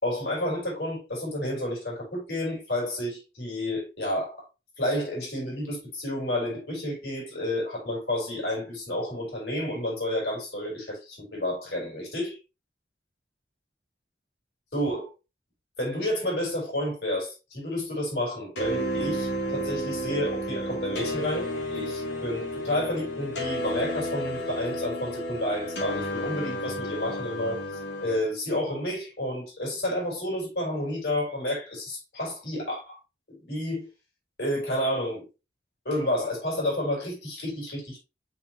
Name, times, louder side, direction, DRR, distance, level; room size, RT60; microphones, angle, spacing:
voice 1, 0.0-4.5 4.8-12.4 14.7-15.1 15.8-27.6 28.0-33.0 33.3-33.9 34.4-35.3 35.8-38.0, left 1 dB, 65° left, 4.3 m, -30 dB
sound 1, 18.6-28.2, equal, 85° left, 3.0 m, -32 dB
6.0 x 5.9 x 3.0 m
head